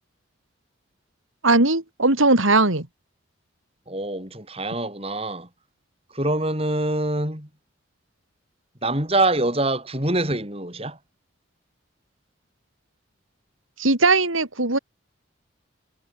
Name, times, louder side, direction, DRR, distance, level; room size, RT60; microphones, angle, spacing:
voice 1, 1.4-2.9 13.8-14.8, right 2 dB, 85° right, 4.3 m, -19 dB
voice 2, 3.9-5.5 6.1-7.5 8.8-11.0, right 2 dB, 30° right, 6.5 m, -25 dB
head